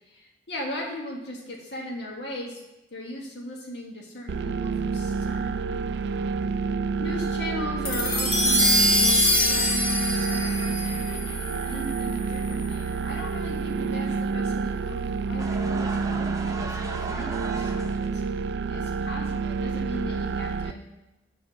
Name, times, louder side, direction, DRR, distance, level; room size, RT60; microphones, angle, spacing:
voice 1, 0.1-2.6 2.9-5.8 7.0-18.2 18.7-20.8, left 1 dB, 80° left, -2 dB, 1.6 m, -38 dB
sound 1, 4.3-20.7, right 5 dB, 70° right, 0.4 m, -28 dB
sound 2, 7.8-12.4, left 1 dB, 35° left, 1.7 m, -24 dB
sound 3, 15.4-18.2, right 2 dB, 20° right, 0.6 m, -37 dB
8.3 x 4.4 x 6.2 m, 0.97 s
head